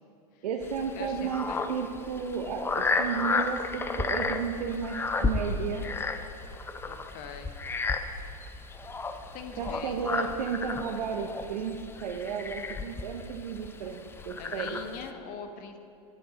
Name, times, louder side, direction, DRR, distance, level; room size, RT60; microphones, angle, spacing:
voice 1, 0.4-5.9 9.6-14.8, right 6 dB, 80° right, 2 dB, 0.7 m, -33 dB
sound 1, 0.6-15.1, left 4 dB, 10° left, 0.4 m, -33 dB
voice 2, 0.9-1.7 6.9-7.5 9.1-10.4 14.4-15.8, left 6 dB, 45° left, 7 dB, 0.9 m, -43 dB
sound 2, 2.7-10.6, right 5 dB, 90° left, 2.0 m, -53 dB
8.8 x 7.7 x 5.0 m, 2.7 s
hypercardioid pair, 100°, 21 cm